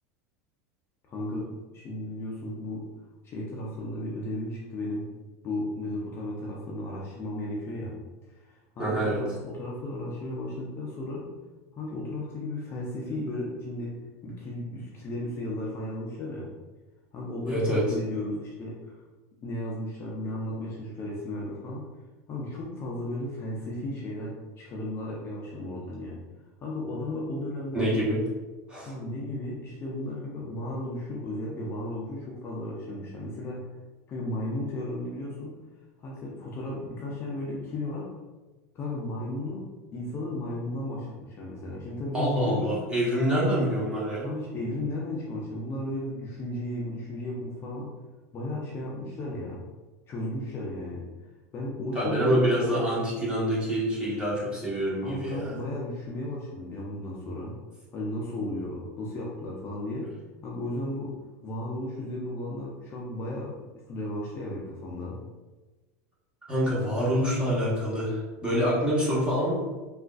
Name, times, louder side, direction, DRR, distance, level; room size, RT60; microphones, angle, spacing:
voice 1, 1.1-2.8 3.2-5.1 5.4-8.0 8.3-11.3 11.7-16.5 17.1-19.0 19.4-21.9 22.3-26.2 26.6-28.1 28.9-33.6 34.1-35.5 36.0-38.1 38.7-42.7 44.2-47.9 48.3-49.6 50.1-51.0 51.5-52.9 55.0-57.5 57.9-60.1 60.4-61.1 61.4-63.5 63.9-65.2, left 1 dB, 30° left, -4 dB, 0.5 m, -34 dB
voice 2, 8.8-9.2 17.5-17.8 27.7-28.2 28.7-28.9 42.1-44.3 51.9-55.5 66.5-69.6, equal, 10° right, -7 dB, 1.1 m, -26 dB
3.6 x 2.4 x 2.3 m, 1.2 s
supercardioid pair, 140°, 8 cm